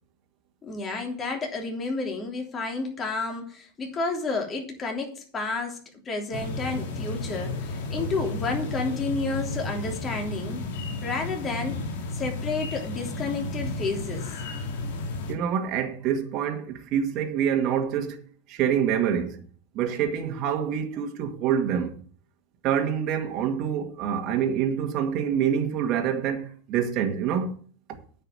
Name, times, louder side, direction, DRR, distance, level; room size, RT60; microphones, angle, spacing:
voice 1, 0.6-10.6 11.0-11.8 12.1-14.3, left 3 dB, 25° left, 3.2 m, -31 dB
sound 1, 6.3-15.4, left 2 dB, 75° left, 2.2 m, -33 dB
voice 2, 15.3-19.4 19.7-21.9 22.6-27.6, right 8 dB, 50° right, 1.8 m, -26 dB
9.5 x 5.6 x 7.6 m
supercardioid pair, 130°, 0 cm